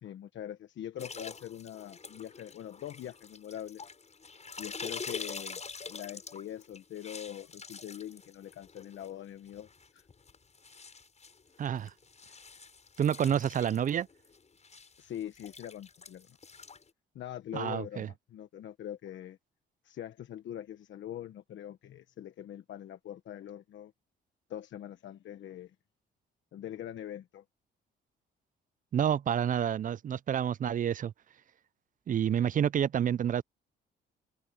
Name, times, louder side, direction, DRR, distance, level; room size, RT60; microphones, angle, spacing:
voice 1, 0.0-3.8 4.6-5.6 5.9-10.0 15.0-16.4 17.1-19.4 19.8-23.9 24.5-25.7 26.5-27.4, left 11 dB, 70° left, 1.2 m, -43 dB
sound 1, 1.0-9.1 9.5-16.9, left 4 dB, 35° left, 7.9 m, -46 dB
voice 2, 11.6-11.9 13.0-14.1 17.5-18.1 28.9-31.1 32.1-33.4, right 9 dB, 45° right, 0.4 m, -28 dB
cardioid pair, 90°, 20 cm